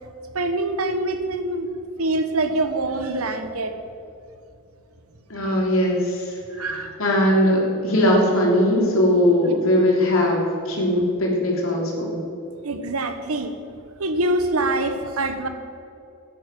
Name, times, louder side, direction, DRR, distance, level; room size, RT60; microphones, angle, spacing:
voice 1, 0.3-1.7 2.0-3.7 6.6-6.9 12.6-13.5 14.0-15.5, right 2 dB, 85° right, 8 dB, 1.2 m, -24 dB
voice 2, 5.3-6.2 6.6-12.2, left 1 dB, 70° left, -2 dB, 3.2 m, -20 dB
13.0 x 10.0 x 6.1 m, 2.5 s
head